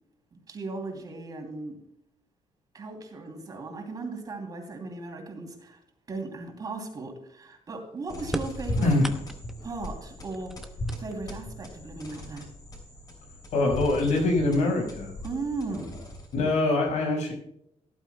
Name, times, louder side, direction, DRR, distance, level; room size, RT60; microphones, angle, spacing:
voice 1, 0.3-1.8 2.7-5.8 6.1-8.9 9.6-10.5 11.0-12.5 15.2-16.0, right 3 dB, 30° right, 4 dB, 2.8 m, -37 dB
sound 1, 8.1-16.5, left 1 dB, 35° left, 3.3 m, -38 dB
sound 2, 8.3-9.7 10.2-11.4 12.4-12.5 13.5-13.6 14.1-14.6, right 1 dB, 5° right, 0.8 m, -37 dB
voice 2, 8.8-9.1 13.5-15.1 16.3-17.3, left 2 dB, 90° left, 2 dB, 5.1 m, -24 dB
17.5 x 11.5 x 2.2 m, 0.73 s
cardioid pair, 170°, 12 cm